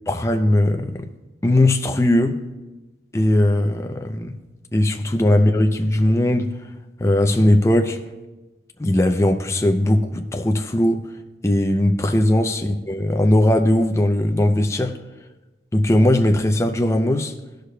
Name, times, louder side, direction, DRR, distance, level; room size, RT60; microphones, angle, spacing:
voice 1, 0.1-1.1 1.4-2.4 3.1-4.4 4.7-6.5 7.0-8.0 8.8-11.0 11.4-15.0 15.7-17.3, left 1 dB, 15° left, 0.4 m, -19 dB
16.5 x 6.5 x 2.2 m
head